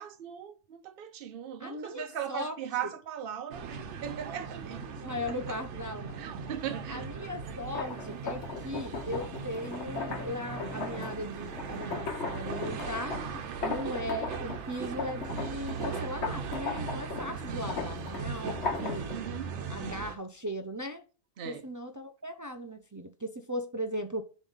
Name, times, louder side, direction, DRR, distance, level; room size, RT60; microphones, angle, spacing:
voice 1, 0.0-5.1 5.5-5.6 6.2-7.1 17.2-17.5 19.1-19.6 21.4-21.7, right 9 dB, 55° right, 0.9 m, -39 dB
voice 2, 1.6-2.5 5.0-6.2 6.9-13.2 13.6-19.1 19.7-21.0 21.4-24.2, equal, 30° right, 0.3 m, -38 dB
sound 1, 3.5-20.2, right 5 dB, 85° right, 1.0 m, -39 dB
sound 2, 7.6-14.7 15.0-19.1, left 4 dB, 70° left, 1.4 m, -37 dB
7.0 x 3.1 x 5.5 m
omnidirectional pair, 1.2 m